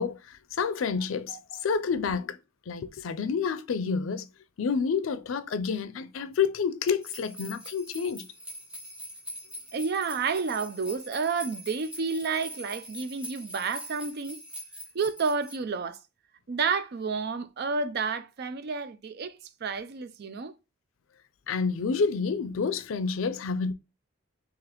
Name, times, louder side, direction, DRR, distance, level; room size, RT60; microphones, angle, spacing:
voice 1, 0.0-2.4 2.7-4.3 4.6-8.2 21.5-23.7, left 5 dB, 85° left, 0.4 m, -29 dB
voice 2, 1.3-1.7 9.7-14.4 14.9-16.0 16.5-20.6, right 5 dB, 55° right, 0.4 m, -30 dB
sound 1, 7.0-15.5, equal, 5° right, 1.0 m, -43 dB
3.9 x 2.9 x 2.9 m
head